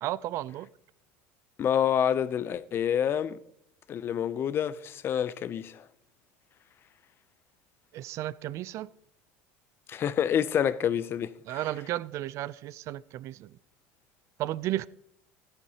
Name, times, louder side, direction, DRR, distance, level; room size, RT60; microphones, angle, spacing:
voice 1, 0.0-0.7 7.9-8.9 11.5-13.5 14.4-14.9, right 14 dB, 50° right, 0.3 m, -33 dB
voice 2, 1.6-3.4 3.9-5.8 9.9-11.6, left 9 dB, 40° left, 0.5 m, -28 dB
14.0 x 11.0 x 2.9 m
supercardioid pair, 100°, 6 cm